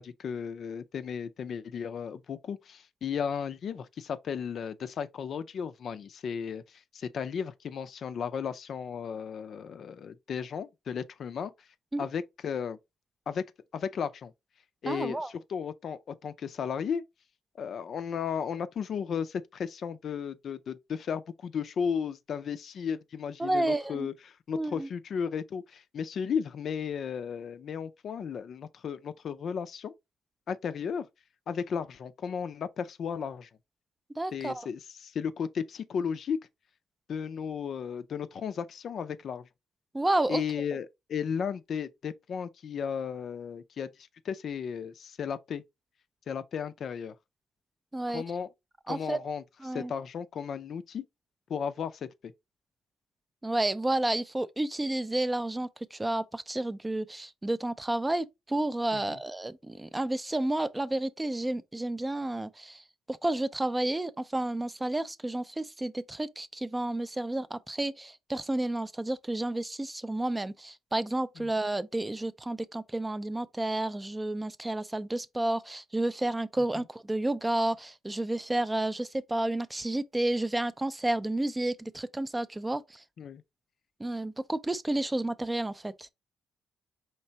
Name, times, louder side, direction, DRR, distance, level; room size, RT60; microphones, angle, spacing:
voice 1, 0.0-11.5 12.0-12.8 13.3-13.5 13.7-14.3 14.8-17.0 17.6-29.9 30.5-31.1 31.5-33.5 34.3-36.4 37.1-39.5 40.3-45.6 46.3-47.1 48.1-48.5 48.9-49.4 49.7-51.1 51.5-52.3 58.9-59.2 71.4-71.5 76.7-76.8 83.2-83.4, left 7 dB, 60° left, 0.4 m, -34 dB
voice 2, 14.9-15.3 23.4-24.1 24.5-24.9 34.2-34.7 39.9-40.4 47.9-48.2 48.9-49.2 49.6-49.9 53.4-62.8 63.1-83.0 84.0-86.1, right 1 dB, 15° right, 0.3 m, -31 dB
4.4 x 3.2 x 2.8 m
cardioid pair, 90°, 0 cm